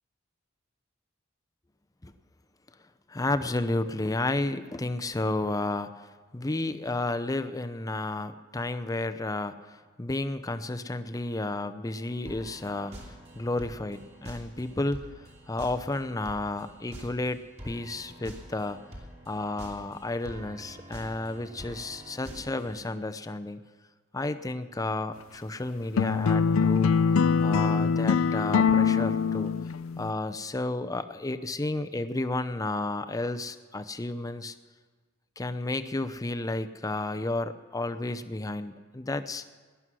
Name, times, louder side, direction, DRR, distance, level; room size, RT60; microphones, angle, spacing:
voice 1, 3.1-15.0 15.5-18.8 19.3-23.6 24.1-26.9 27.4-29.5 30.0-34.5 35.4-39.4, left 2 dB, 15° left, 10 dB, 0.6 m, -32 dB
sound 1, 12.3-22.9, equal, 35° right, 2.9 m, -46 dB
sound 2, 26.0-30.1, left 6 dB, 75° left, 0.4 m, -23 dB
18.5 x 11.5 x 6.2 m, 1.4 s
head